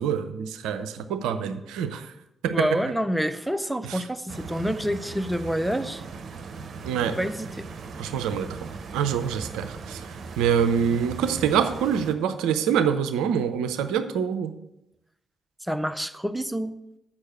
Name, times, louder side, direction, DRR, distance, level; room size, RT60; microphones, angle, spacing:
voice 1, 0.0-2.1 2.4-2.7 3.9-4.0 6.8-7.2 8.0-8.5 8.9-10.1 10.4-14.5, right 8 dB, 75° right, 10 dB, 0.5 m, -25 dB
voice 2, 2.5-6.0 7.2-7.6 15.6-16.8, equal, 5° right, 11 dB, 0.7 m, -27 dB
Stream, 4.3-12.1, right 4 dB, 55° right, 0.9 m, -38 dB
7.4 x 6.4 x 7.6 m, 0.89 s
hypercardioid pair, 40°, 0 cm